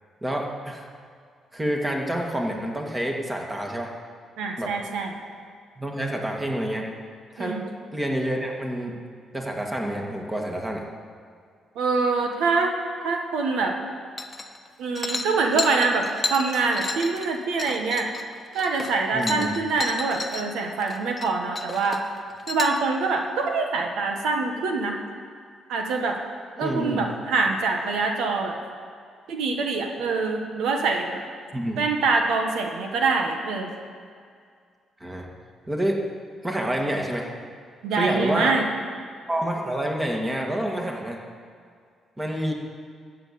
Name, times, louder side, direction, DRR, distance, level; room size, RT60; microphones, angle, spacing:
voice 1, 0.2-0.9 1.5-3.9 4.6-4.7 5.8-6.9 7.3-7.6 7.9-9.0 9.3-10.8 19.1-19.5 26.6-27.1 31.5-31.8 35.0-35.3 35.7-36.0 36.4-37.3 37.9-38.6 39.3-41.2 42.2-42.5, right 1 dB, 15° right, 0 dB, 2.3 m, -28 dB
voice 2, 4.4-5.1 7.4-7.6 11.7-12.7 13.0-13.8 14.8-18.1 18.5-22.0 22.5-25.0 25.7-26.2 26.6-28.6 29.3-31.2 31.8-33.7 37.8-38.6, right 4 dB, 85° right, 3 dB, 1.4 m, -25 dB
sound 1, 14.2-14.7 14.9-20.4 20.8-21.3 21.5-22.8, left 3 dB, 25° left, 1.1 m, -32 dB
13.0 x 7.5 x 8.7 m, 2.1 s
cardioid pair, 90°, 0 cm